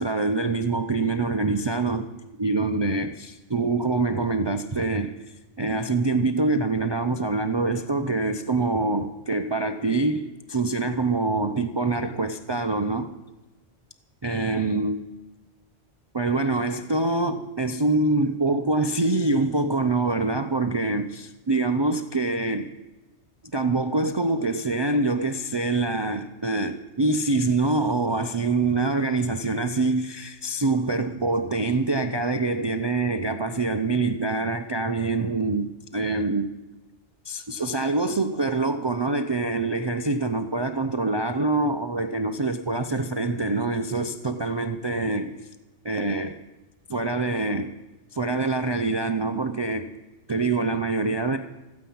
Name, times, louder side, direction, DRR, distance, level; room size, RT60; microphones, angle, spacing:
voice 1, 0.0-2.1 2.4-5.2 5.6-13.1 14.2-15.0 16.1-22.7 23.5-36.5 37.3-45.5 45.8-46.4 46.9-47.7 48.1-49.9 50.3-51.4, right 3 dB, 35° right, 0.4 m, -25 dB
14.0 x 9.4 x 8.6 m
omnidirectional pair, 1.2 m